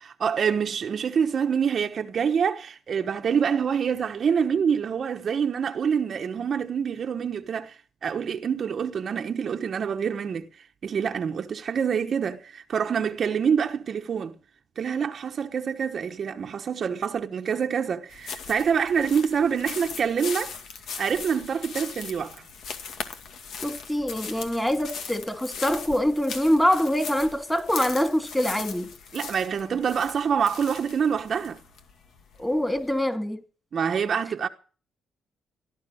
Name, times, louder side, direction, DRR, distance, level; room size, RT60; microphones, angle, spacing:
voice 1, 0.0-10.5 10.8-14.3 14.8-20.5 21.0-22.4 29.1-31.6 33.7-34.5, right 7 dB, 50° right, 1.2 m, -26 dB
sound 1, 18.1-33.0, left 5 dB, 70° left, 2.2 m, -39 dB
voice 2, 23.6-28.9 32.4-33.4, equal, 5° left, 3.3 m, -24 dB
17.0 x 12.5 x 6.3 m
cardioid pair, 90°, 0 cm